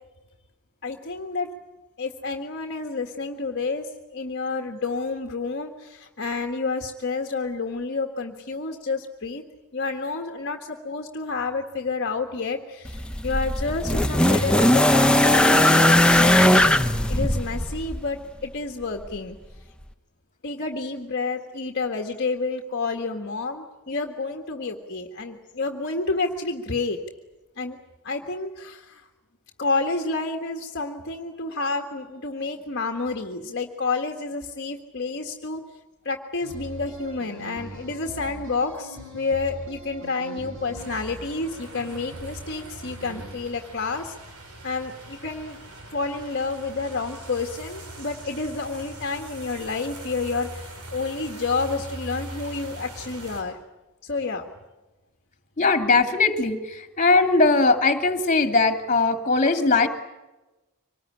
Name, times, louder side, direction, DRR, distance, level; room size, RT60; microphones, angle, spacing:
voice 1, 0.8-1.5 2.0-9.4 9.7-16.8 17.1-19.4 20.4-27.0 27.6-27.8 28.0-29.1 29.6-35.6 36.0-44.1 44.6-45.6 45.9-53.6 54.0-54.5, left 3 dB, 50° left, 3 dB, 1.7 m, -29 dB
sound 1, 12.9-18.1 19.1-19.2, left 1 dB, 5° left, 0.9 m, -19 dB
sound 2, 36.4-43.4, right 2 dB, 60° right, 6.2 m, -41 dB
sound 3, 40.8-53.4, right 1 dB, 80° right, 5.5 m, -41 dB
voice 2, 55.6-59.9, left 3 dB, 35° left, 6 dB, 2.5 m, -20 dB
25.0 x 19.5 x 10.0 m, 1.1 s
head